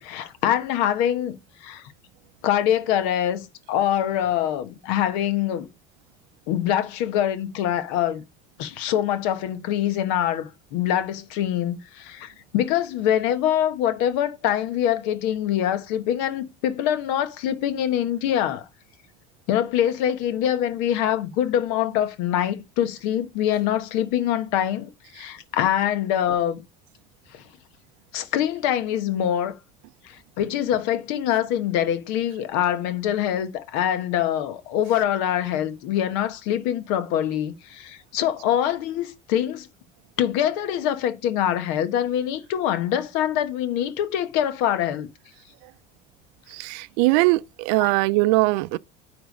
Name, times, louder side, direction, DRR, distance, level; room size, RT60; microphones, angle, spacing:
voice 1, 0.0-1.8 2.4-5.7 6.5-8.2 8.6-18.7 19.5-26.6 27.3-27.4 28.1-29.5 30.0-39.7 40.2-45.1 47.8-47.9, left 10 dB, 70° left, 1.2 m, -24 dB
voice 2, 46.5-48.8, right 22 dB, 80° right, 0.5 m, -21 dB
9.6 x 3.4 x 5.3 m
cardioid pair, 165°, 21 cm